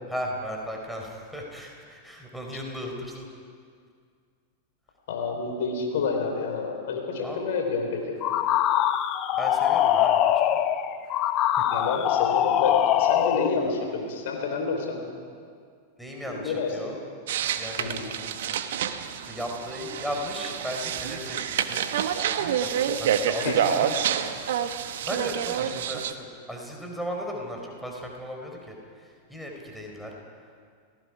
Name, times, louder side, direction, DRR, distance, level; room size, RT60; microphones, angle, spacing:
voice 1, 0.1-3.3 7.2-7.5 9.3-10.2 10.5-10.6 16.0-16.9 17.5-17.9 19.3-21.8 22.6-23.9 25.0-30.1, equal, ahead, 0 dB, 4.5 m, -36 dB
voice 2, 5.1-8.2 11.7-15.0 16.3-17.0 17.8-18.1 23.4-23.7, left 4 dB, 55° left, 2 dB, 4.3 m, -29 dB
sound 1, 8.2-13.6, left 11 dB, 35° left, 1.0 m, -23 dB
sound 2, 17.3-26.1, right 9 dB, 55° right, 1.2 m, -28 dB
30.0 x 18.5 x 5.0 m, 2.1 s
figure-of-eight pair, 90°, 0 cm